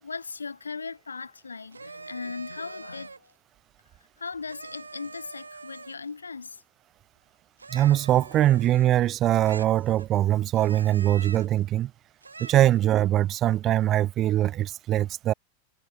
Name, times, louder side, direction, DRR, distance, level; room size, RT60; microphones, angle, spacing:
voice 1, 0.0-3.3 4.2-6.6, left 4 dB, 75° left, 0.7 m, -38 dB
sound 1, 1.7-3.3 4.5-6.1 7.6-9.1 9.4-10.2 10.5-11.6 12.2-12.8, right 4 dB, 80° right, 5.4 m, -44 dB
voice 2, 7.7-11.9 12.4-15.3, right 13 dB, 30° right, 0.7 m, -22 dB
figure-of-eight pair, 90°, 0 cm